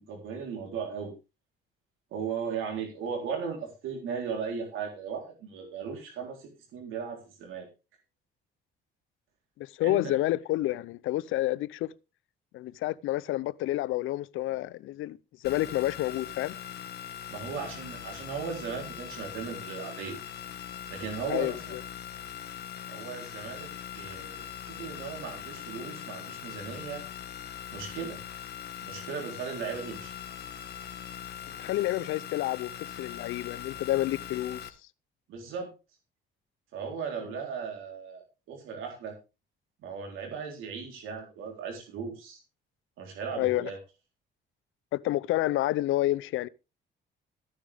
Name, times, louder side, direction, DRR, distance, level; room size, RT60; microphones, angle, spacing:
voice 1, 0.1-1.1 2.1-7.7 9.8-10.2 17.3-20.2 20.9-21.8 22.9-24.5 24.8-27.0 27.7-28.2 28.8-30.1 35.3-35.7 36.7-39.2 39.8-42.4 43.0-43.8, right 6 dB, 90° right, 3.7 m, -37 dB
voice 2, 9.6-11.9 12.5-15.2 15.4-16.6 21.3-21.8 31.6-32.7 33.0-34.6 43.4-43.7 44.9-46.5, left 15 dB, 85° left, 0.6 m, -29 dB
sound 1, 15.4-34.7, left 10 dB, 55° left, 1.5 m, -41 dB
14.0 x 10.0 x 3.5 m
cardioid pair, 90°, 20 cm